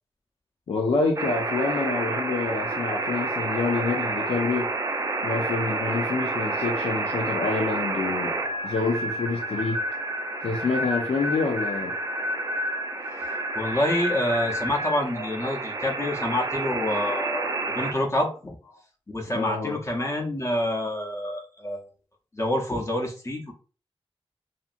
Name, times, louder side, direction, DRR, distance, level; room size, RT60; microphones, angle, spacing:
voice 1, 0.7-4.7 5.1-9.8 10.4-12.0 15.1-15.3 16.0-16.1 17.3-17.6 19.3-19.8, left 4 dB, 80° left, 0.5 m, -27 dB
sound 1, 1.2-17.9, right 2 dB, 35° right, 0.4 m, -29 dB
voice 2, 13.1-18.6 19.1-21.8 22.3-23.5, left 1 dB, 25° left, 0.7 m, -27 dB
2.8 x 2.5 x 2.5 m
wide cardioid pair, 125°, 10 cm